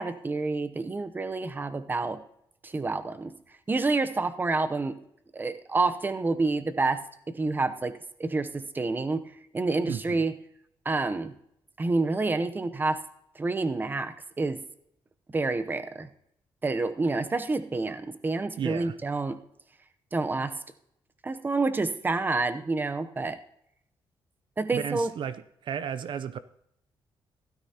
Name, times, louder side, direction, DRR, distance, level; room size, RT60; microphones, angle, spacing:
voice 1, 0.0-2.2 2.6-3.3 3.7-5.0 5.3-10.3 10.8-11.3 11.8-13.0 13.3-14.6 15.3-16.1 16.6-19.4 20.1-20.6 21.2-23.4 24.6-25.1, right 3 dB, 20° right, 0.7 m, -28 dB
voice 2, 9.9-10.2 18.6-19.0 24.7-26.4, right 8 dB, 60° right, 0.5 m, -33 dB
16.0 x 13.0 x 2.9 m
cardioid pair, 125°, 9 cm